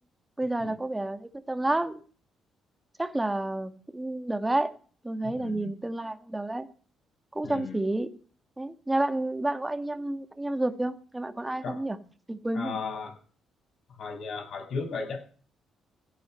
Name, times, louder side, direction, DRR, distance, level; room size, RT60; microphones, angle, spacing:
voice 1, 0.4-2.0 3.0-4.7 5.0-6.7 7.3-8.1 8.6-12.0 12.3-12.8, right 2 dB, 10° right, 9 dB, 1.8 m, -30 dB
voice 2, 5.3-5.7 7.4-7.8 11.6-11.8 12.5-13.1 14.0-15.2, left 4 dB, 60° left, 5 dB, 7.1 m, -35 dB
16.5 x 10.0 x 6.5 m, 0.42 s
cardioid pair, 90°, 0 cm